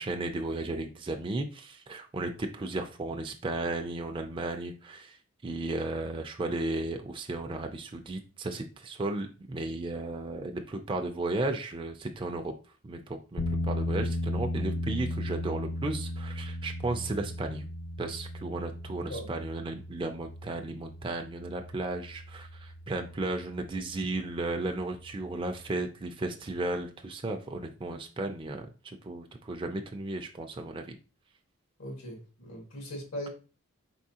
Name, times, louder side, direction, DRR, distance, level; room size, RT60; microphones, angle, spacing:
voice 1, 0.0-5.2 5.4-12.5 12.8-17.6 18.0-31.0, right 2 dB, 25° right, 4 dB, 0.4 m, -34 dB
sound 1, 13.4-25.7, left 1 dB, 45° left, 0.6 m, -36 dB
voice 2, 31.8-33.3, equal, 85° left, 0 dB, 1.7 m, -39 dB
4.6 x 3.5 x 2.8 m, 0.36 s
head